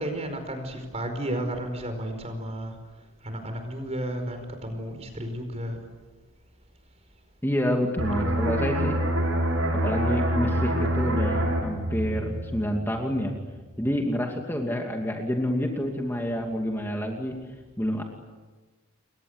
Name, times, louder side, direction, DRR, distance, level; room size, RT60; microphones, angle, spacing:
voice 1, 0.0-2.7 3.2-5.8, right 1 dB, 30° right, 6 dB, 5.0 m, -32 dB
voice 2, 7.4-9.1 9.8-13.3 13.8-17.4 17.8-18.0, equal, 10° left, 1 dB, 2.5 m, -28 dB
sound 1, 8.0-13.4 13.7-13.9, right 1 dB, 90° right, 7.4 m, -26 dB
29.0 x 23.5 x 8.1 m, 1.3 s
head